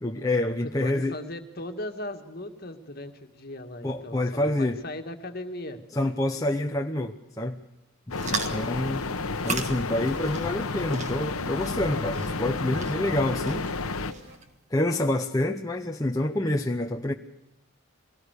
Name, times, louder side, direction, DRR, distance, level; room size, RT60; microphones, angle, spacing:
voice 1, 0.0-1.1 3.8-4.8 5.9-7.6 8.3-9.1 9.4-13.7 14.7-17.1, left 1 dB, 15° left, 1 dB, 0.9 m, -27 dB
voice 2, 0.6-5.8 8.5-8.8, left 1 dB, 45° left, 6 dB, 2.0 m, -38 dB
sound 1, 8.1-14.1, left 3 dB, 85° left, 1.1 m, -31 dB
sound 2, 8.1-14.5, right 4 dB, 35° right, 1.7 m, -38 dB
sound 3, 8.1-14.4, equal, 50° right, 5.4 m, -47 dB
23.0 x 18.5 x 6.6 m, 0.83 s
head